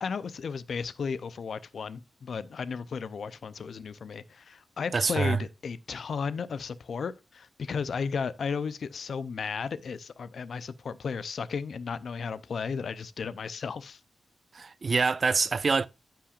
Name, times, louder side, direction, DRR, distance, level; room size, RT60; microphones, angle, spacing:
voice 1, 0.0-14.0, left 5 dB, 60° left, 0.5 m, -34 dB
voice 2, 4.9-5.4 14.5-15.9, right 4 dB, 40° right, 0.3 m, -25 dB
15.0 x 5.7 x 2.4 m
wide cardioid pair, 165°, 0 cm